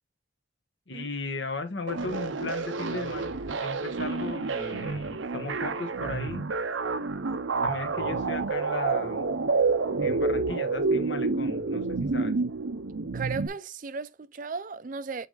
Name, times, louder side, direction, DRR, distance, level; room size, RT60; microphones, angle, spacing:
voice 1, 0.9-3.3 3.6-6.4 7.6-9.3 10.0-12.3, left 3 dB, 70° left, 1.3 m, -36 dB
sound 1, 1.9-13.5, right 4 dB, 85° right, 0.7 m, -29 dB
voice 2, 13.1-15.3, right 4 dB, 45° right, 0.5 m, -35 dB
8.3 x 3.3 x 3.9 m
head